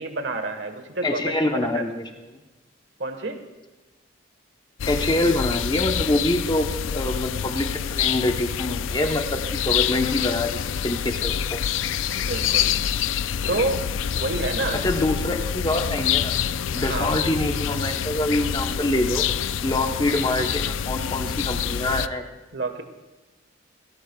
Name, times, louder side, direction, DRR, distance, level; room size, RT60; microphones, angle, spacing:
voice 1, 0.0-1.8 3.0-3.4 9.4-9.6 12.1-12.7 13.5-13.8 14.1-15.2 16.8-17.2 22.5-22.8, right 2 dB, 65° right, 6 dB, 1.5 m, -29 dB
voice 2, 1.0-2.0 2.3-2.4 4.9-11.6 14.7-16.3 16.7-19.3 19.6-22.3, left 1 dB, 20° left, 4 dB, 1.0 m, -25 dB
sound 1, 4.8-22.1, left 8 dB, 75° left, 0.4 m, -26 dB
18.5 x 16.5 x 2.4 m, 1.1 s
head